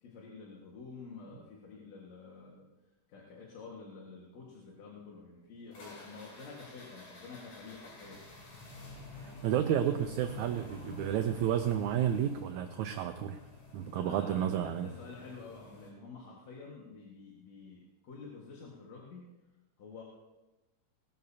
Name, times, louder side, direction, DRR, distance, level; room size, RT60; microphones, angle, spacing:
voice 1, 0.0-2.7 3.1-8.2 13.9-19.2 19.8-20.0, left 4 dB, 60° left, -3 dB, 2.8 m, -49 dB
sound 1, 5.7-15.9, left 2 dB, 75° left, 5.8 m, -50 dB
voice 2, 9.2-13.4 13.7-14.9, right 10 dB, 75° right, 7 dB, 1.9 m, -31 dB
20.0 x 12.5 x 2.8 m, 1.1 s
omnidirectional pair, 3.7 m